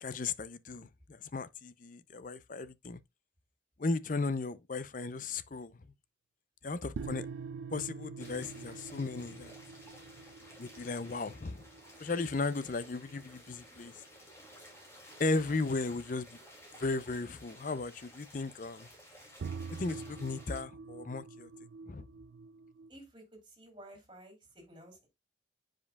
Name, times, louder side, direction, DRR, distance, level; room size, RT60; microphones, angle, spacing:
voice 1, 0.0-3.0 3.8-5.7 6.6-7.3 7.7-9.5 10.6-11.6 12.0-14.0 15.2-16.4 16.8-18.9 19.7-21.5 21.9-22.0, left 3 dB, 45° left, 0.5 m, -36 dB
sound 1, 6.9-13.7 19.4-22.9, right 5 dB, 75° right, 0.4 m, -45 dB
sound 2, 8.2-20.6, equal, 15° left, 2.5 m, -55 dB
voice 2, 22.9-25.1, right 1 dB, 25° right, 3.1 m, -53 dB
9.6 x 5.2 x 2.3 m
head